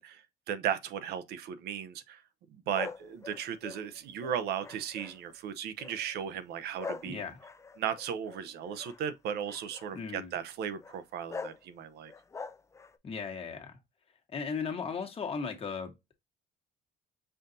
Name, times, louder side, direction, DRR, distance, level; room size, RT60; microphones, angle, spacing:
voice 1, 0.0-2.2 2.5-7.2 7.8-12.1, right 8 dB, 75° right, 0.6 m, -36 dB
sound 1, 2.7-5.3 5.8-6.1 6.8-9.0 9.5-9.9 10.8-11.0 11.3-11.6 12.1-13.0, left 4 dB, 15° left, 0.4 m, -43 dB
voice 2, 7.0-7.4 9.9-10.3 13.0-13.7 14.3-16.1, left 5 dB, 35° left, 1.3 m, -37 dB
5.5 x 2.6 x 2.6 m
cardioid pair, 110°, 17 cm